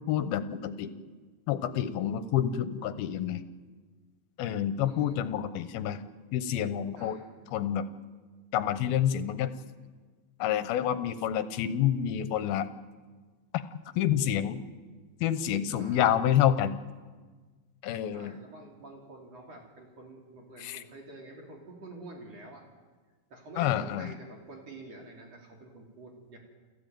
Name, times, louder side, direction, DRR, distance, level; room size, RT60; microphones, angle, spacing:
voice 1, 0.1-0.9 1.5-3.4 4.4-6.0 6.3-7.2 7.5-7.8 8.5-9.5 10.4-12.7 14.0-14.6 15.2-16.8 17.8-18.3 20.6-20.8 23.6-24.1, left 10 dB, 80° left, 12 dB, 2.8 m, -28 dB
voice 2, 4.8-5.3 7.0-7.3 15.8-16.2 18.1-22.6 23.3-26.4, right 2 dB, 45° right, 0 dB, 4.0 m, -48 dB
29.5 x 13.0 x 9.1 m, 1.4 s
omnidirectional pair, 4.3 m